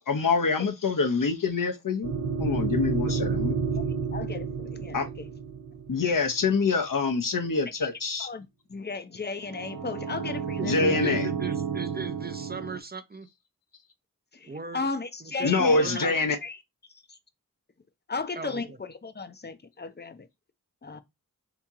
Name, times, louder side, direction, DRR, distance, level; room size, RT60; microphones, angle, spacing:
voice 1, 0.0-3.5 4.9-5.1 5.9-8.3 10.6-11.3 15.4-16.3, left 4 dB, 70° left, 0.8 m, -25 dB
sound 1, 2.0-6.4 9.4-12.8, right 6 dB, 90° right, 0.6 m, -31 dB
voice 2, 3.1-3.4 10.6-13.3 14.5-14.8 15.2-16.2 18.3-18.8, right 5 dB, 30° right, 0.5 m, -38 dB
voice 3, 4.1-5.3 8.2-11.0 14.3-16.6 17.1-17.2 18.1-20.3 20.8-21.0, left 4 dB, 30° left, 0.6 m, -35 dB
2.9 x 2.8 x 3.5 m
wide cardioid pair, 55°, 34 cm